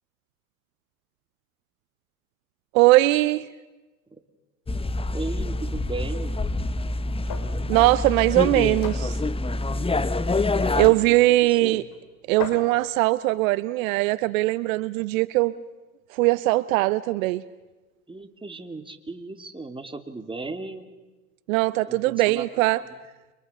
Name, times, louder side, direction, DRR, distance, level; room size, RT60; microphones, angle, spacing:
voice 1, 2.7-3.5 7.7-9.2 10.8-11.8 12.3-15.6 16.1-17.4 21.5-22.8, right 19 dB, 70° right, 17 dB, 0.8 m, -20 dB
sound 1, 4.7-10.9, left 2 dB, 15° left, 1.0 m, -26 dB
voice 2, 5.1-6.4 10.5-11.0 11.5-11.9 18.1-20.9 21.9-22.5 22.7-22.8, right 3 dB, 10° right, 6 dB, 2.6 m, -36 dB
sound 2, 7.3-7.5 8.0-8.2 8.8-9.1 10.0-10.1 10.8-11.1 11.9-12.0 12.4-12.8, left 7 dB, 50° left, 4.0 m, -35 dB
29.5 x 24.5 x 6.6 m, 1.1 s
hypercardioid pair, 75°, 42 cm